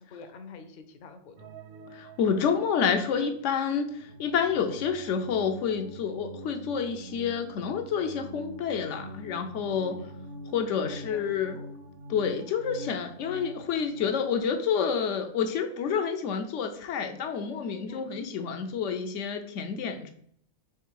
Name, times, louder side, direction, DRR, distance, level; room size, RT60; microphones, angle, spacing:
voice 1, 0.0-1.5 9.8-10.2 10.9-11.7 17.9-18.2, left 4 dB, 55° left, 7 dB, 0.6 m, -47 dB
sound 1, 1.4-14.3, right 1 dB, 65° right, 0.7 m, -45 dB
voice 2, 1.9-10.0 10.5-11.6 12.1-20.1, left 6 dB, 85° left, 6 dB, 0.9 m, -29 dB
3.6 x 3.2 x 4.5 m, 0.64 s
omnidirectional pair, 1.2 m